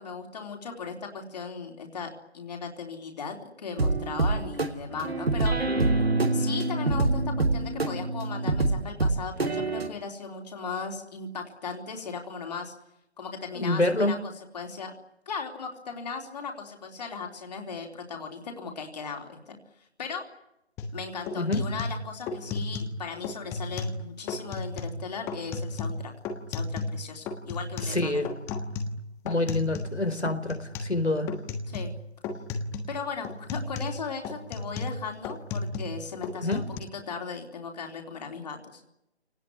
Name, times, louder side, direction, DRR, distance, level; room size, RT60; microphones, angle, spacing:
voice 1, 0.0-5.6 6.3-12.7 13.2-14.9 15.3-20.3 20.9-26.1 26.5-28.2 31.7-31.9 32.9-38.8, left 5 dB, 40° left, 3 dB, 3.7 m, -37 dB
sound 1, 3.8-9.9, right 2 dB, 65° right, 3.0 m, -26 dB
voice 2, 13.6-14.1 21.3-21.6 27.8-28.3 29.2-31.3 36.4-36.6, left 2 dB, 85° left, 6 dB, 4.2 m, -26 dB
sound 2, 20.8-21.0 21.3-23.0 23.2-24.0 24.3-25.0 25.3-27.0 27.3-30.0 30.2-31.0 31.3-32.0 32.2-32.9 33.2-36.0 36.2-36.8, left 3 dB, 10° left, 1.3 m, -33 dB
28.0 x 19.0 x 9.9 m, 0.85 s
figure-of-eight pair, 145°, 32 cm